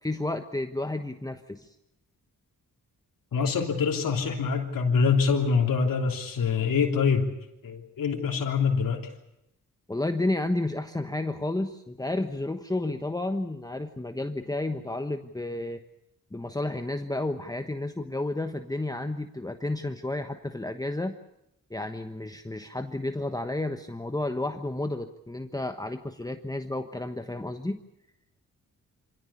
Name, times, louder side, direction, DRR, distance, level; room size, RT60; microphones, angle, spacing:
voice 1, 0.0-1.7 9.9-15.8 16.3-21.2 21.7-27.8, left 2 dB, 10° left, 7 dB, 1.2 m, -31 dB
voice 2, 3.3-7.3 7.6-9.1, left 5 dB, 80° left, 2 dB, 3.3 m, -25 dB
25.0 x 17.5 x 8.5 m, 0.86 s
cardioid pair, 70°, 33 cm